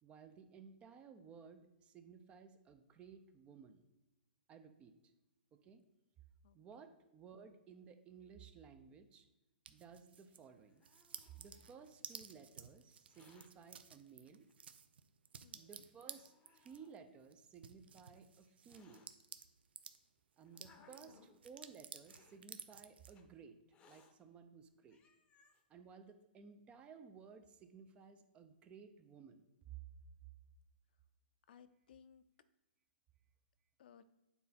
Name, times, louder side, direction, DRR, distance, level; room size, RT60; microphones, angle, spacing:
voice 1, 0.0-3.8 4.5-4.9 5.5-5.8 6.5-9.3 9.7-10.8 11.4-14.5 15.5-19.1 20.4-25.0 25.7-29.8, right 6 dB, 20° right, 9 dB, 0.6 m, -57 dB
sound 1, 9.6-10.5 10.8-20.0 20.4-23.1, right 7 dB, 75° right, 0.6 m, -54 dB
Hiss, 10.3-12.0 12.9-13.5 14.5-14.6 15.4-15.5 16.0-17.0 17.9-19.1 19.9-21.4 22.0-22.4 23.1-23.2 23.7-24.1 24.6-24.7 24.9-25.6, left 4 dB, 20° left, 0.8 m, -68 dB
voice 2, 15.4-15.8 20.8-21.3 31.5-32.2 33.8-34.0, left 7 dB, 60° left, 12 dB, 0.6 m, -62 dB
9.1 x 4.2 x 4.1 m, 0.97 s
hypercardioid pair, 140°, 6 cm